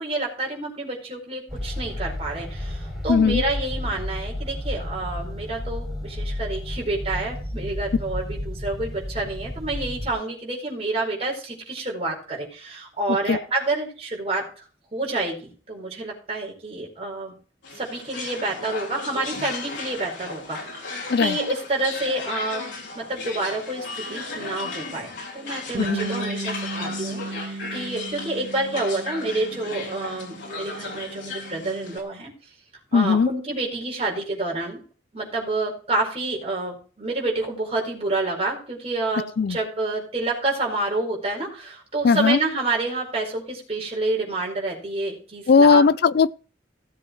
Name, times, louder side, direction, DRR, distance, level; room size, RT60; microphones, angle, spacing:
voice 1, 0.0-14.4 14.9-17.3 17.7-22.6 22.9-32.3 32.9-34.8 35.1-45.8, right 2 dB, 35° right, 4.7 m, -28 dB
sound 1, 1.5-10.1, left 1 dB, ahead, 3.4 m, -32 dB
voice 2, 3.1-3.4 13.3-13.4 21.1-21.4 25.8-26.1 32.9-33.3 39.4-39.6 42.0-42.4 45.5-46.3, left 5 dB, 55° left, 0.4 m, -18 dB
sound 2, 17.6-32.0, left 3 dB, 80° left, 3.8 m, -35 dB
Bass guitar, 25.7-32.0, right 2 dB, 55° right, 0.5 m, -35 dB
17.0 x 7.5 x 3.1 m
head